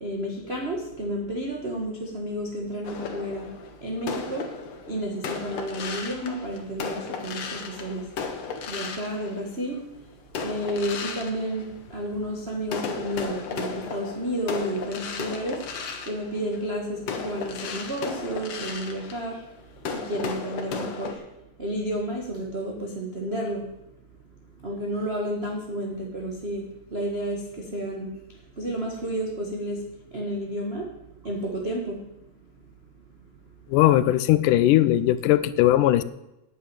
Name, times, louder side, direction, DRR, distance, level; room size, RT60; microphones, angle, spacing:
voice 1, 0.0-3.5 3.8-4.4 4.9-8.0 8.7-9.8 10.4-11.6 11.9-15.6 16.1-19.4 19.9-21.2 21.6-23.6 24.6-26.6 26.9-27.4 27.7-28.1 28.6-29.8 30.1-30.8 31.2-32.0, right 1 dB, 35° right, 0 dB, 0.9 m, -31 dB
sound 1, 2.8-9.8 10.3-12.3 12.6-21.1, left 5 dB, 55° left, 2.2 m, -35 dB
voice 2, 33.7-36.0, left 14 dB, 80° left, 15 dB, 2.1 m, -19 dB
9.1 x 8.7 x 9.0 m, 0.92 s
omnidirectional pair, 3.9 m